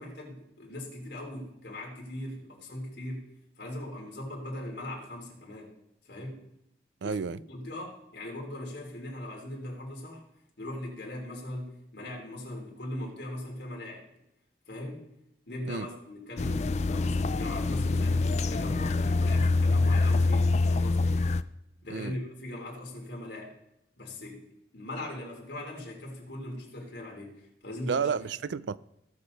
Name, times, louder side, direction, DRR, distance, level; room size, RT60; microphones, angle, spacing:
voice 1, 0.0-3.3 3.6-5.7 6.1-6.4 7.0-10.2 10.6-14.0 14.7-15.1 15.5-21.3 21.8-23.5 24.0-24.5 24.7-28.3, left 1 dB, 70° left, 3.6 m, -40 dB
voice 2, 7.0-7.4 15.7-15.9 21.9-22.2 27.9-28.8, right 6 dB, 90° right, 0.4 m, -31 dB
sound 1, 16.4-21.4, left 3 dB, 40° left, 0.4 m, -25 dB
18.0 x 7.0 x 4.0 m
head